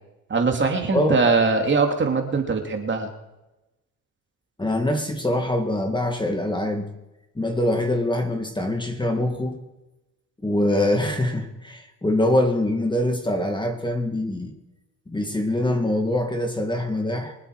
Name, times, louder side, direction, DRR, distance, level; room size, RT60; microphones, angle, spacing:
voice 1, 0.3-3.1, right 4 dB, 30° right, 3 dB, 2.8 m, -21 dB
voice 2, 4.6-6.9 7.4-9.6 10.4-14.5 15.1-17.4, left 1 dB, 15° left, 4 dB, 2.2 m, -24 dB
24.5 x 8.3 x 4.9 m, 0.99 s
supercardioid pair, 80°, 36 cm